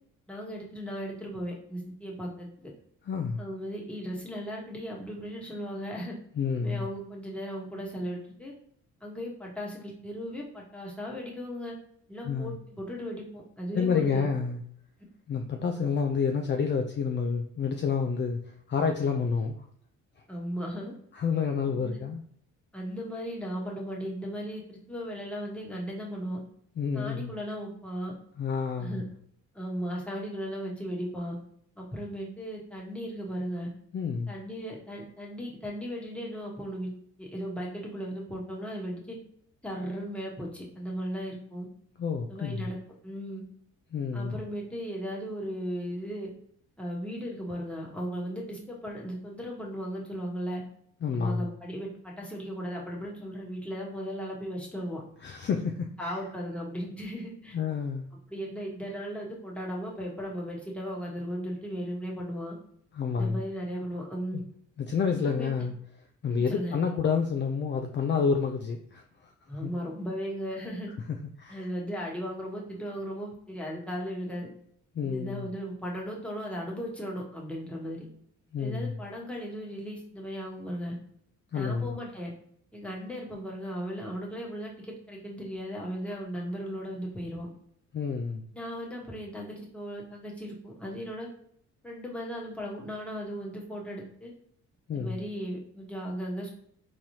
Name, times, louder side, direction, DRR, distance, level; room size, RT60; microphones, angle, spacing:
voice 1, 0.3-2.7 3.4-6.1 6.6-8.5 9.0-11.7 12.1-14.2 20.3-20.9 21.7-22.0 22.7-26.4 26.9-28.1 28.8-29.0 29.5-31.4 31.8-33.7 34.3-36.9 37.2-39.2 39.6-41.7 42.3-42.8 43.0-43.4 44.1-46.3 46.8-50.6 51.1-55.0 56.0-57.6 58.1-62.6 63.2-64.4 65.2-65.7 66.2-66.8 69.5-70.9 71.5-74.5 75.0-78.1 78.6-81.0 81.5-82.3 82.7-87.5 88.5-91.3 91.8-94.3 94.9-96.5, equal, 5° left, -3 dB, 1.2 m, -36 dB
voice 2, 3.1-3.4 6.4-6.9 12.2-12.6 13.7-14.6 15.3-18.4 18.7-19.6 21.1-22.2 26.8-27.3 28.4-29.0 33.9-34.3 42.0-42.7 43.9-44.4 51.0-51.5 55.2-56.1 57.5-58.1 63.0-63.4 64.3-64.4 64.8-65.7 66.2-69.0 69.6-69.7 71.4-71.7 75.0-75.5 78.5-79.0 81.5-82.0 87.9-88.4 94.9-95.2, left 5 dB, 40° left, 4 dB, 0.4 m, -29 dB
3.9 x 3.1 x 2.8 m, 0.67 s
cardioid pair, 90°, 30 cm